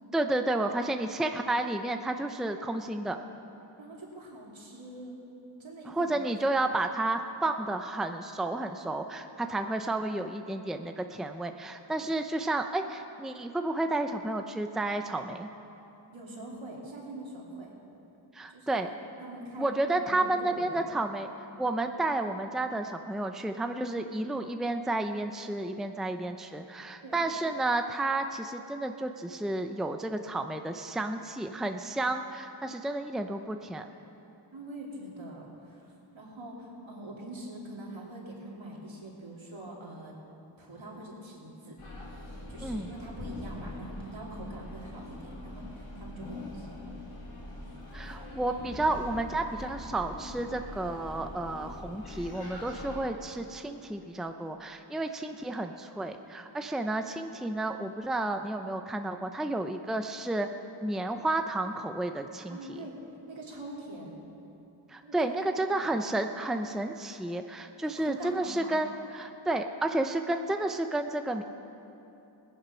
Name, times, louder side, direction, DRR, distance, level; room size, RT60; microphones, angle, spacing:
voice 1, 0.1-3.2 5.9-15.5 18.3-18.9 19.6-21.3 21.6-33.9 42.6-42.9 47.9-60.5 60.8-62.9 64.9-71.4, right 2 dB, ahead, 6 dB, 0.6 m, -31 dB
voice 2, 3.8-5.2 5.6-6.2 16.1-17.7 18.5-18.8 19.2-20.9 27.0-27.2 34.5-40.1 40.6-41.8 42.5-47.0 62.5-63.0 63.3-64.2 65.0-66.0 68.0-68.7, right 1 dB, 70° right, -3 dB, 3.0 m, -44 dB
sound 1, 41.8-53.0, left 1 dB, 90° left, 2.7 m, -43 dB
17.5 x 10.0 x 5.7 m, 2.9 s
cardioid pair, 45°, 49 cm